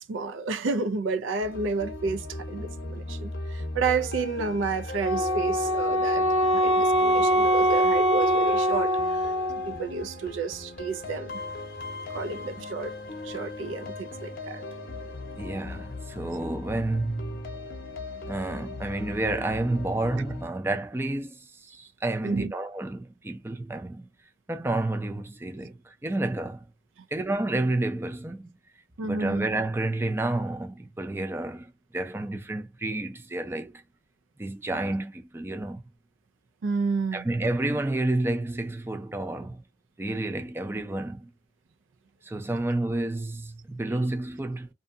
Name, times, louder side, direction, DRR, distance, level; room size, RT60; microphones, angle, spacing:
voice 1, 0.0-9.3 9.7-11.4 12.1-13.0 13.2-14.6 22.2-22.5 27.0-27.1 29.0-29.5 36.6-37.3, right 4 dB, 90° right, 0.4 m, -31 dB
sound 1, 1.4-20.5, left 2 dB, 50° left, 0.7 m, -38 dB
Wind instrument woodwind instrument, 5.0-9.8, equal, 35° right, 0.7 m, -23 dB
voice 2, 15.4-17.6 18.2-24.1 24.5-26.7 27.1-28.5 29.0-33.8 34.4-35.8 37.1-39.6 40.0-41.3 42.2-44.7, right 2 dB, 10° right, 0.4 m, -30 dB
2.7 x 2.2 x 2.6 m
head